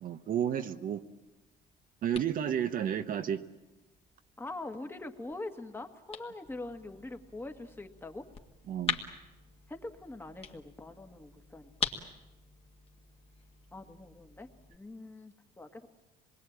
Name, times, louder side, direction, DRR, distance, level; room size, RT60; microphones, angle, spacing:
voice 1, 0.0-1.0 2.0-3.4 8.7-9.0, right 9 dB, 55° right, 9 dB, 1.0 m, -31 dB
sound 1, 1.3-14.8, left 5 dB, 35° left, 1.9 m, -44 dB
voice 2, 4.4-8.2 9.7-11.9 13.7-15.9, left 2 dB, 15° left, 6 dB, 1.7 m, -43 dB
26.0 x 21.0 x 8.8 m, 1.1 s
cardioid pair, 110°, 17 cm